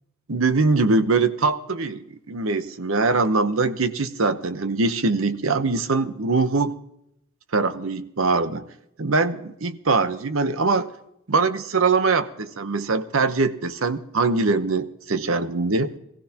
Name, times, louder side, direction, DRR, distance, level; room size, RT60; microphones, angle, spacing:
voice 1, 0.3-6.7 7.5-8.7 9.0-10.9 11.3-15.9, right 3 dB, 65° right, 11 dB, 0.9 m, -22 dB
21.0 x 15.5 x 2.9 m, 0.77 s
head